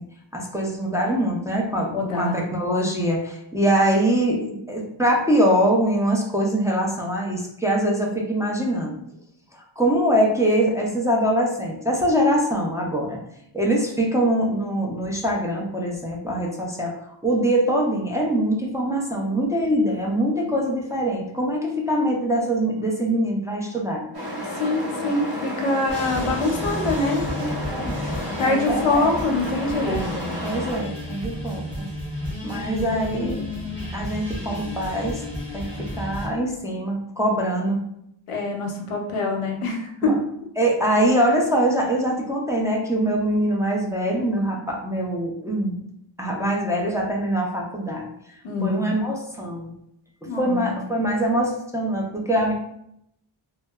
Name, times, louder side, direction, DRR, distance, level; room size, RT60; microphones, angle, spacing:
voice 1, 0.3-9.0 9.5-13.2 13.5-24.1 27.4-28.0 28.4-29.0 29.9-30.2 30.4-31.9 32.4-33.5 33.9-35.2 35.5-37.8 40.0-40.1 40.6-45.7 46.2-48.1 48.6-49.7 50.2-52.5, right 1 dB, 5° right, -2 dB, 0.5 m, -23 dB
voice 2, 1.9-2.4 24.5-27.2 28.4-30.3 32.5-32.7 38.3-40.1 48.4-48.8 50.3-50.7, left 2 dB, 85° left, 2 dB, 0.6 m, -24 dB
sound 1, 24.1-30.8, left 1 dB, 50° right, 0.8 m, -31 dB
sound 2, 25.9-36.3, left 1 dB, 90° right, 1.4 m, -32 dB
2.7 x 2.1 x 2.2 m, 0.76 s
cardioid pair, 50°, 50 cm